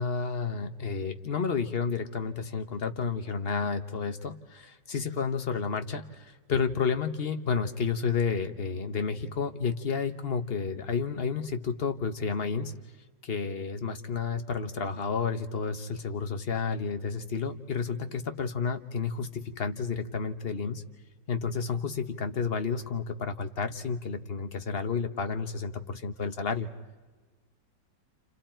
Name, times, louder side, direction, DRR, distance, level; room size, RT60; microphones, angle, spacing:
voice 1, 0.0-12.7 13.2-20.8 21.3-26.7, left 5 dB, 40° left, 7 dB, 1.2 m, -31 dB
29.5 x 29.5 x 4.5 m, 1.3 s
omnidirectional pair, 1.9 m